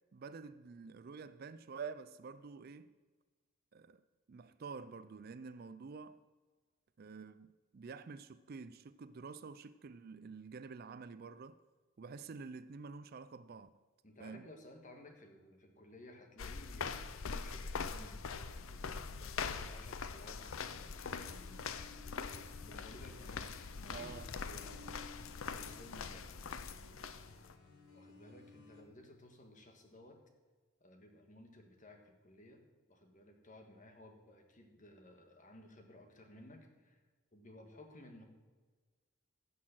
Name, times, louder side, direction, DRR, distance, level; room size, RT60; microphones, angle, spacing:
voice 1, 0.1-3.0 3.7-4.0 4.3-6.2 7.0-11.6 12.0-13.7 14.2-14.5 23.9-24.3, right 5 dB, 45° right, 0.4 m, -48 dB
voice 2, 14.0-21.7 22.6-25.0 25.5-26.3 27.9-30.2 30.8-32.6 32.9-37.0 37.3-38.2, left 1 dB, 35° left, 1.7 m, -57 dB
sound 1, 16.4-27.5, left 5 dB, 70° left, 0.6 m, -43 dB
sound 2, 20.4-28.8, left 2 dB, 85° left, 2.6 m, -59 dB
16.0 x 6.4 x 6.0 m
head